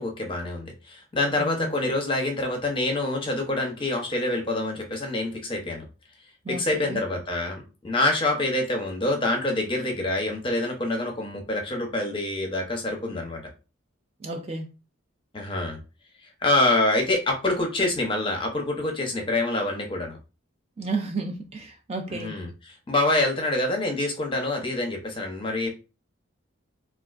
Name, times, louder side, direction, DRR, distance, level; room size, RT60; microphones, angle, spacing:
voice 1, 0.0-5.8 6.5-13.4 15.3-15.8 16.4-20.2 22.1-25.7, left 2 dB, 25° left, 0.6 m, -26 dB
voice 2, 1.3-1.7 6.5-7.0 14.2-14.7 20.8-22.4, right 3 dB, 30° right, 0.4 m, -32 dB
3.5 x 2.3 x 2.3 m
head